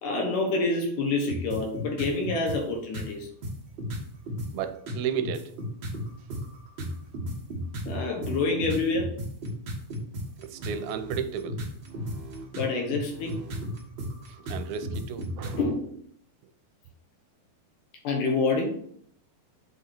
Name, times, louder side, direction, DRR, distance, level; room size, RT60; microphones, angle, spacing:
voice 1, 0.0-3.3 7.9-9.1 12.5-13.4 15.6-15.9 18.0-18.8, left 3 dB, 70° left, 2.4 m, -27 dB
sound 1, 1.3-2.6 2.9-3.1 3.4-4.5 4.9-15.6, equal, 55° right, 1.4 m, -34 dB
voice 2, 4.5-5.5 10.4-11.6 14.5-15.6, right 8 dB, 85° right, 2.5 m, -33 dB
7.9 x 3.6 x 4.3 m
omnidirectional pair, 4.4 m